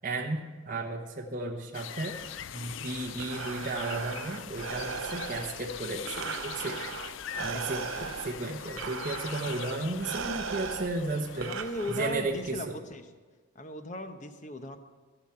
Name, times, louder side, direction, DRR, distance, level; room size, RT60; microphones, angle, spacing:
voice 1, 0.0-2.2 2.5-6.9 7.4-11.6 11.9-12.8, right 2 dB, 40° right, 0 dB, 1.0 m, -34 dB
sound 1, 1.7-12.4, left 9 dB, 70° left, 0.4 m, -43 dB
Breathing, 2.9-12.6, right 5 dB, 75° right, 0.7 m, -38 dB
voice 2, 7.5-8.1 11.3-13.1 13.5-14.8, left 1 dB, 35° left, 8 dB, 0.8 m, -38 dB
16.0 x 5.9 x 8.7 m, 1.4 s
head